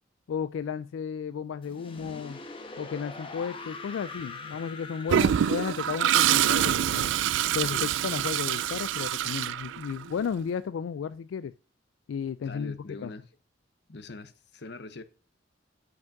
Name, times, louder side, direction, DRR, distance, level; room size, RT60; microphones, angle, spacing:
voice 1, 0.3-2.4 2.8-7.1 7.5-11.5 12.1-13.1, left 7 dB, 90° left, 0.3 m, -33 dB
sound 1, 1.6-8.5, left 3 dB, 30° left, 1.0 m, -44 dB
Toilet flush, 5.1-10.2, right 10 dB, 75° right, 0.3 m, -25 dB
voice 2, 12.4-13.2 13.9-15.0, left 3 dB, 60° left, 0.8 m, -42 dB
6.0 x 5.2 x 5.1 m
head